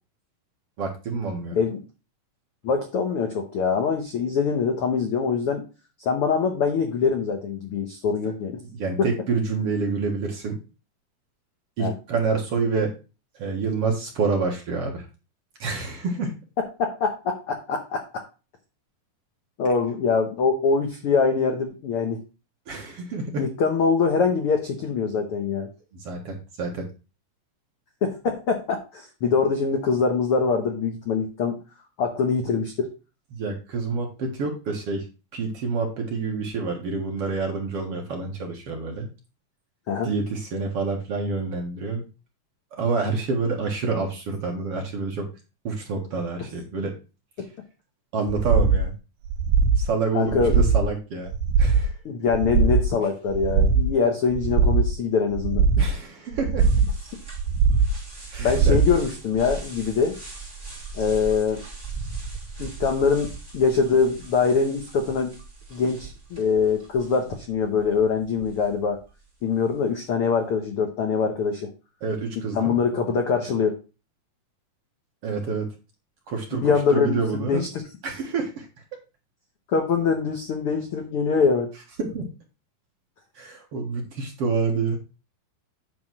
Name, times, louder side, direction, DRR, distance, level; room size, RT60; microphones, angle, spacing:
voice 1, 0.8-1.6 8.7-10.6 11.8-12.9 13.4-15.1 15.6-16.3 22.7-23.5 25.9-26.9 33.3-35.1 35.3-39.1 40.0-42.0 42.7-45.3 45.6-46.9 48.1-48.9 49.8-51.3 51.6-52.0 55.8-56.7 58.3-58.8 72.0-72.8 75.2-75.7 76.3-77.6 78.0-78.7 82.0-82.3 83.4-85.0, right 4 dB, 55° right, 2 dB, 2.0 m, -27 dB
voice 2, 2.6-5.6 6.0-8.6 11.8-11.9 16.6-18.0 19.6-22.2 23.4-25.7 28.0-31.6 32.0-32.9 39.9-40.1 50.1-50.6 52.0-55.6 58.4-60.2 61.0-61.6 62.6-65.4 65.7-69.0 69.4-71.7 72.5-73.7 76.5-77.2 77.5-77.8 79.7-81.7, left 5 dB, 75° left, 4 dB, 1.3 m, -23 dB
sound 1, 48.3-48.8 49.3-49.8 50.3-50.9 51.3-51.9 52.3-52.9 53.3-53.9 54.3-54.9 55.3-55.9 56.3-56.9 57.3-57.9 58.3-58.9 59.4-59.5, right 5 dB, 75° right, 2.4 m, -20 dB
sound 2, 56.6-69.1, right 4 dB, 15° right, 2.5 m, -39 dB
9.3 x 3.9 x 6.2 m, 0.31 s
omnidirectional pair, 4.1 m